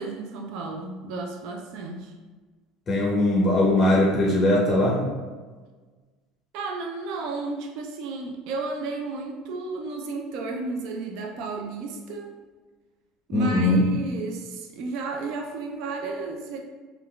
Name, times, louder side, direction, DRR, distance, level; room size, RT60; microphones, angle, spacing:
voice 1, 0.0-2.1 6.5-12.4 13.3-16.6, right 3 dB, 65° right, 2 dB, 0.3 m, -33 dB
voice 2, 2.9-5.0 13.3-13.8, left 1 dB, 30° left, -3 dB, 0.5 m, -20 dB
3.6 x 2.3 x 2.2 m, 1.4 s
supercardioid pair, 125°, 0 cm